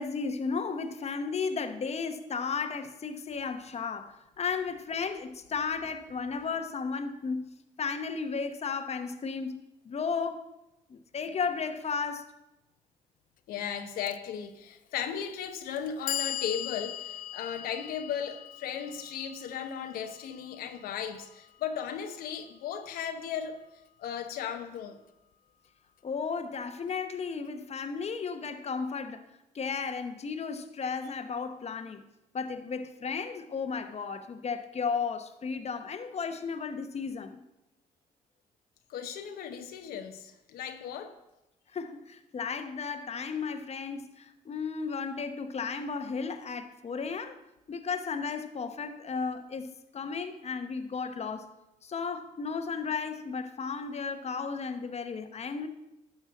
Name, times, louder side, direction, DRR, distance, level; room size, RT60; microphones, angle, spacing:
voice 1, 0.0-7.5 7.8-10.5 10.9-12.3 26.0-29.2 29.5-32.0 32.3-37.4 41.7-47.4 47.7-51.5 51.8-55.7, left 5 dB, 45° left, 1.0 m, -34 dB
voice 2, 13.5-23.6 24.0-25.0 38.9-41.2, left 8 dB, 85° left, 0.9 m, -36 dB
Clock, 14.1-14.2 15.1-15.2 15.8-21.8, left 11 dB, 65° left, 0.4 m, -40 dB
12.0 x 4.5 x 7.0 m
supercardioid pair, 65°, 15 cm